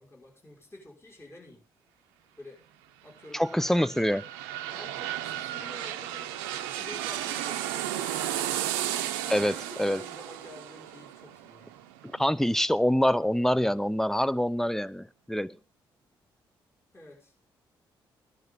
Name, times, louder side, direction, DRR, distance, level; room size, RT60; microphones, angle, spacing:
voice 1, 0.0-1.6 2.4-2.6 3.0-3.4 4.7-6.3 6.7-8.6 9.2-11.9 16.9-17.3, left 2 dB, 20° left, 5.7 m, -49 dB
sound 1, 3.2-12.8 13.2-13.3, right 12 dB, 80° right, 0.7 m, -34 dB
voice 2, 3.3-4.2 9.3-10.0 12.1-15.6, equal, 5° left, 0.7 m, -25 dB
17.0 x 11.0 x 4.0 m
hypercardioid pair, 40°, 11 cm